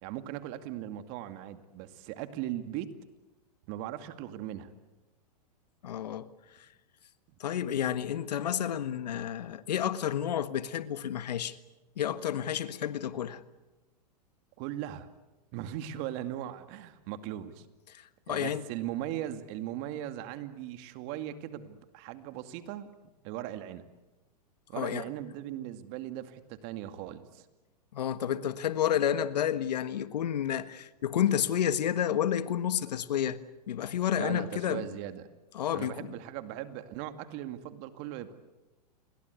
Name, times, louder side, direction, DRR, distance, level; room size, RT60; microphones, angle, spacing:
voice 1, 0.0-2.9 3.7-4.7 14.6-15.1 15.5-17.7 18.3-22.9 23.2-23.8 24.7-27.5 34.1-35.3 35.7-38.3, right 12 dB, 45° right, 2.3 m, -38 dB
voice 2, 5.8-6.3 7.4-11.6 12.0-13.4 17.9-18.6 24.7-25.0 27.9-33.4 33.7-34.9 35.5-35.9, left 10 dB, 80° left, 1.5 m, -30 dB
29.0 x 22.5 x 8.3 m
hypercardioid pair, 120°, 21 cm